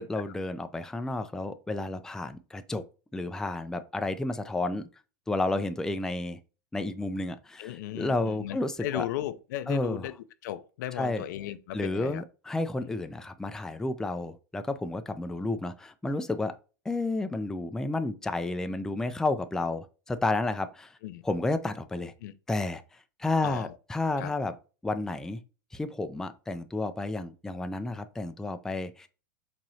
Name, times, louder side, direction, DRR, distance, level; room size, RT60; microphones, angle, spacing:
voice 1, 0.0-2.8 3.1-4.9 5.3-6.4 6.7-9.1 9.7-10.0 11.0-11.2 11.7-16.5 16.9-21.0 21.2-22.1 22.5-22.8 23.2-24.5 24.8-25.4 25.7-29.1, left 2 dB, 5° left, 0.4 m, -31 dB
voice 2, 7.6-10.2 10.4-12.2 12.8-12.9 21.0-21.2 22.2-22.3 23.4-23.8 24.2-24.3, left 13 dB, 70° left, 0.5 m, -36 dB
4.6 x 2.9 x 2.7 m
hypercardioid pair, 105°, 10 cm